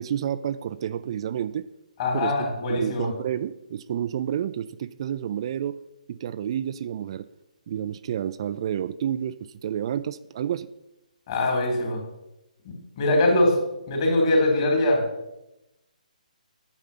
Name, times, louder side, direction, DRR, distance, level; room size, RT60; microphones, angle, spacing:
voice 1, 0.0-1.7 2.1-2.3 2.7-5.8 6.1-7.3 7.7-10.7, right 9 dB, 40° right, 13 dB, 0.3 m, -30 dB
voice 2, 2.0-3.1 11.3-12.0 12.6-13.6 13.9-15.1, left 1 dB, 40° left, 1 dB, 3.3 m, -22 dB
9.2 x 7.1 x 5.7 m, 0.94 s
figure-of-eight pair, 140°, 4 cm